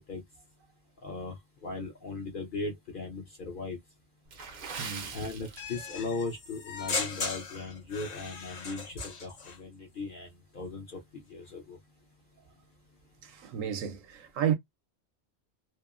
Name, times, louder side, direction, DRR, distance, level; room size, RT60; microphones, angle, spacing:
voice 1, 1.0-1.3 1.6-3.8 5.1-10.3 10.5-11.8, left 3 dB, 50° left, 0.7 m, -38 dB
Water / Splash splatter, 4.2-6.2 6.5-6.7 7.3-7.5 7.9-8.0, right 5 dB, 50° right, 0.6 m, -42 dB
voice 2, 4.8-5.1 13.2-14.5, right 9 dB, 80° right, 1.0 m, -32 dB
sound 1, 5.6-9.6, left 4 dB, 75° left, 1.4 m, -37 dB
2.9 x 2.0 x 2.4 m
omnidirectional pair, 1.3 m